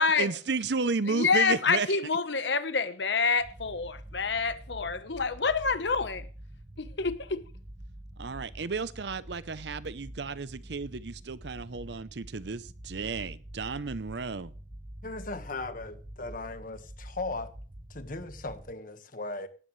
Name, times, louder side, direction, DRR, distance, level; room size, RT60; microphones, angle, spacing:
voice 1, 0.2-1.9 8.2-14.5, right 4 dB, 65° right, 0.7 m, -33 dB
voice 2, 1.1-6.2 6.8-7.4, left 5 dB, 70° left, 1.1 m, -27 dB
sound 1, 3.4-18.7, right 1 dB, 25° right, 0.9 m, -46 dB
voice 3, 15.0-17.6 17.9-19.5, left 2 dB, 50° left, 1.5 m, -37 dB
18.0 x 13.0 x 3.3 m
head